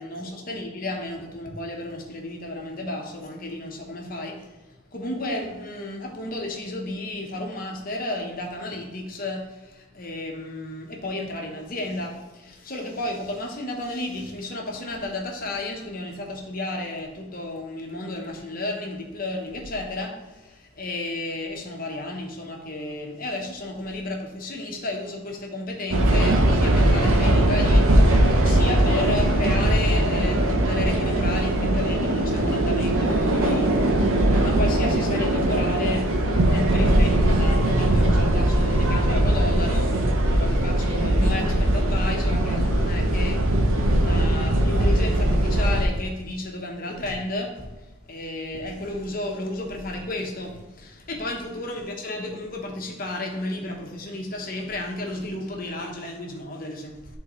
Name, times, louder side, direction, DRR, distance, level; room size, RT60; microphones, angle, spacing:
voice 1, 0.0-27.9 28.4-34.0 34.3-43.4 43.9-57.2, left 2 dB, 40° left, 0 dB, 1.0 m, -32 dB
sound 1, 25.9-45.9, right 1 dB, 75° right, 0.8 m, -20 dB
11.0 x 3.8 x 3.1 m, 1.1 s
head